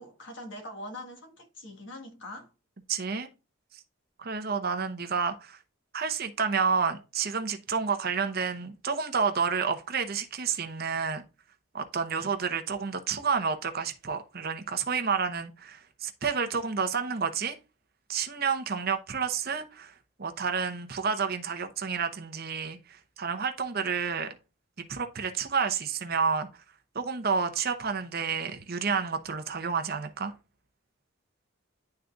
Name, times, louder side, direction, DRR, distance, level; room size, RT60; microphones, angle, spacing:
voice 1, 0.0-2.5, left 1 dB, 55° left, 1.4 m, -43 dB
voice 2, 2.9-3.3 4.2-5.6 5.9-11.2 11.7-17.6 18.1-19.9 20.2-22.8 23.2-24.3 24.9-26.5 26.9-30.3, right 5 dB, 45° right, 0.8 m, -30 dB
11.0 x 3.8 x 2.3 m
head